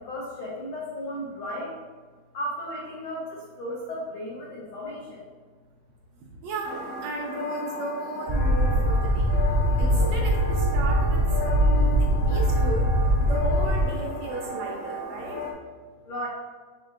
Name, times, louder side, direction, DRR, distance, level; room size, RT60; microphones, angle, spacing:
voice 1, 0.0-1.8 2.3-5.2 16.0-16.3, equal, 85° left, -6 dB, 1.1 m, -35 dB
voice 2, 6.4-9.3 9.8-12.9 13.2-15.4, right 3 dB, 80° right, -1 dB, 1.6 m, -35 dB
sound 1, 6.6-15.5, left 2 dB, 70° left, 1.6 m, -35 dB
sound 2, 8.3-13.8, equal, 60° right, 1.0 m, -22 dB
5.8 x 3.6 x 2.4 m, 1.5 s
omnidirectional pair, 3.4 m